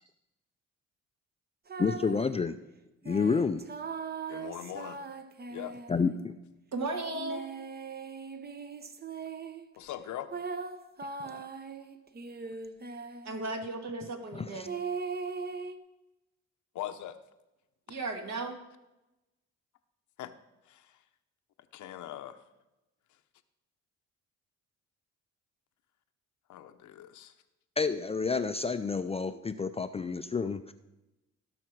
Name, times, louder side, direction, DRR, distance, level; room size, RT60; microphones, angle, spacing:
sound 1, 1.7-2.3 3.0-6.3 7.1-9.7 10.3-13.4 14.7-15.8, right 5 dB, 35° right, 0.8 m, -39 dB
voice 1, 1.8-2.6 3.1-3.6 5.9-6.4 11.2-11.4 14.3-14.7 27.8-30.7, left 5 dB, 20° left, 10 dB, 0.4 m, -29 dB
voice 2, 4.3-5.0 5.5-5.8 9.8-10.3 16.7-17.2 20.2-20.3 20.6-21.0 21.7-22.4 26.5-27.3, left 12 dB, 75° left, 10 dB, 0.8 m, -41 dB
voice 3, 6.7-7.5 13.2-14.7 17.9-18.6, right 2 dB, 60° right, 3 dB, 2.0 m, -35 dB
17.0 x 5.9 x 4.6 m, 0.99 s
cardioid pair, 90°, 30 cm